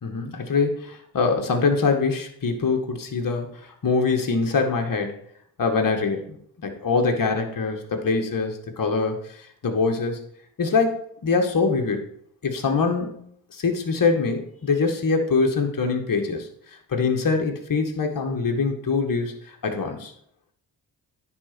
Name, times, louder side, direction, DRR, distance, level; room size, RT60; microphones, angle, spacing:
voice 1, 0.0-5.1 5.6-6.4 6.6-9.2 9.6-10.2 10.6-11.0 11.2-12.0 12.4-16.5 16.9-20.1, left 4 dB, 50° left, 3 dB, 1.9 m, -23 dB
9.7 x 4.2 x 6.1 m, 0.67 s
hypercardioid pair, 40°, 44 cm